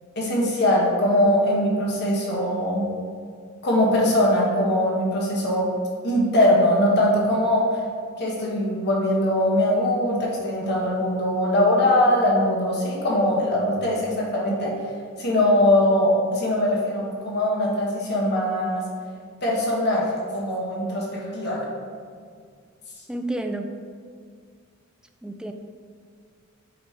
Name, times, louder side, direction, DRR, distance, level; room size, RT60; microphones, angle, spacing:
voice 1, 0.1-2.9 3.6-5.7 6.0-7.8 8.2-14.7 15.2-18.8 19.4-21.6, left 1 dB, 55° left, -4 dB, 1.5 m, -21 dB
voice 2, 23.1-23.7 25.2-25.5, right 1 dB, 5° right, 5 dB, 0.3 m, -30 dB
7.7 x 3.3 x 4.6 m, 2.1 s
head